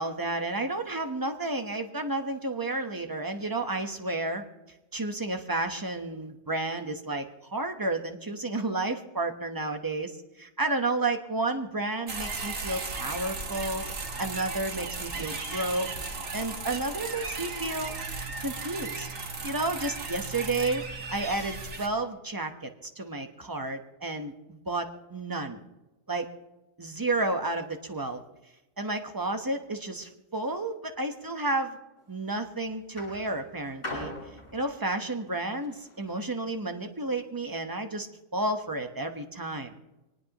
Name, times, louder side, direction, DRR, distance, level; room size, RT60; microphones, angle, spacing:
voice 1, 0.0-4.4 4.9-13.8 14.2-15.9 16.3-17.9 18.4-19.1 19.4-25.6 26.1-26.3 26.8-28.2 28.8-31.8 32.1-34.1 34.5-38.1 38.3-39.7, right 2 dB, 15° right, 5 dB, 1.1 m, -31 dB
sound 1, 12.1-21.9, right 3 dB, 80° right, 2.0 m, -36 dB
sound 2, 32.0-32.3 33.0-36.2 37.0-37.1, left 1 dB, 45° left, 7.8 m, -41 dB
24.0 x 19.0 x 3.0 m, 1.0 s
omnidirectional pair, 1.4 m